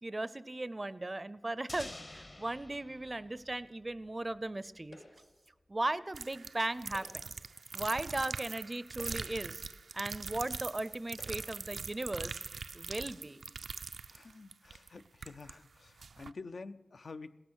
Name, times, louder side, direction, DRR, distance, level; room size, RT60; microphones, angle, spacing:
voice 1, 0.0-5.0 5.7-7.3 7.7-9.6 9.9-12.4 12.7-13.4, right 2 dB, 30° right, 17 dB, 0.5 m, -37 dB
sound 1, 1.7-4.5, left 2 dB, 30° left, 0.8 m, -50 dB
sound 2, 4.9-5.4 6.8-7.5 8.3-8.4 8.9-9.6 10.4-10.5 11.1-11.7, left 2 dB, 80° left, 5.3 m, -55 dB
sound 3, 6.1-15.5 16.0-16.3, right 4 dB, 80° right, 0.5 m, -42 dB
voice 2, 14.1-17.4, left 3 dB, 65° left, 10 dB, 0.5 m, -48 dB
17.0 x 14.0 x 6.2 m, 1.2 s
wide cardioid pair, 85°, 0 cm